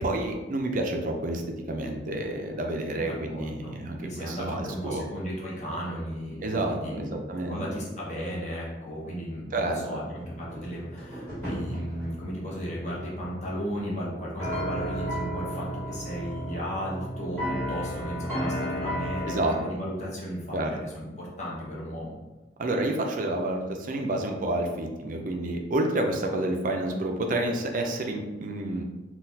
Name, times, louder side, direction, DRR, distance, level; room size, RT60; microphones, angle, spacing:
voice 1, 0.0-1.4 1.7-5.0 6.4-7.6 9.5-10.0 19.3-19.6 20.5-20.7 22.6-28.8, right 1 dB, 45° right, 3 dB, 0.4 m, -29 dB
voice 2, 3.0-22.1, equal, 40° left, -5 dB, 0.8 m, -35 dB
sound 1, 10.1-19.6, equal, 10° left, 1.5 m, -34 dB
3.8 x 2.3 x 2.7 m, 1.1 s
head